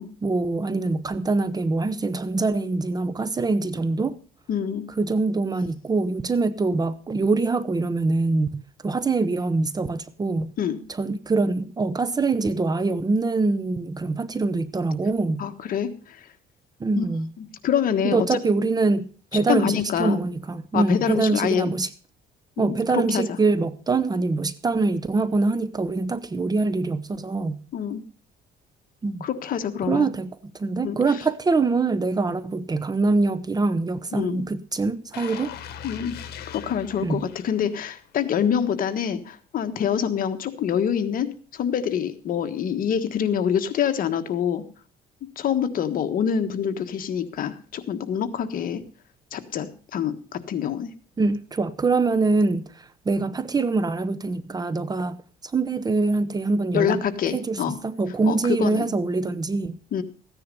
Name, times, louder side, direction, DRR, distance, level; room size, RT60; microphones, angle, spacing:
voice 1, 0.2-4.2 5.0-10.5 10.9-15.4 16.8-17.3 18.0-21.9 22.6-27.6 29.0-29.3 29.9-35.5 37.0-37.2 51.2-55.2 55.5-57.0 57.3-59.8, right 3 dB, 25° right, 0.9 m, -24 dB
voice 2, 4.5-4.8 10.6-10.8 15.4-16.3 17.0-17.1 17.4-18.2 19.5-20.2 20.7-21.7 22.6-23.2 27.7-28.0 29.2-30.1 30.8-31.0 34.1-34.4 35.8-36.1 36.5-44.6 45.4-48.8 49.3-50.9 56.7-57.8 58.2-58.8 59.9-60.0, left 8 dB, 55° left, 1.5 m, -26 dB
sound 1, 35.1-38.1 38.5-38.7, left 9 dB, 70° left, 1.6 m, -40 dB
15.0 x 9.9 x 5.4 m
cardioid pair, 110°, 17 cm